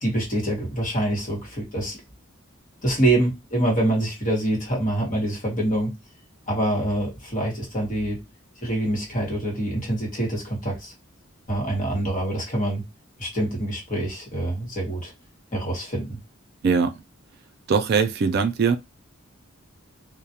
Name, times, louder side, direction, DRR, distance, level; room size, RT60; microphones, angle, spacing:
voice 1, 0.0-2.0 2.8-5.9 6.5-8.2 8.6-10.9 11.5-12.8 13.2-15.1 15.5-16.2, right 1 dB, 35° left, 1.1 m, -25 dB
voice 2, 16.6-16.9 17.7-18.8, right 5 dB, 50° right, 0.3 m, -21 dB
2.3 x 2.1 x 2.8 m
head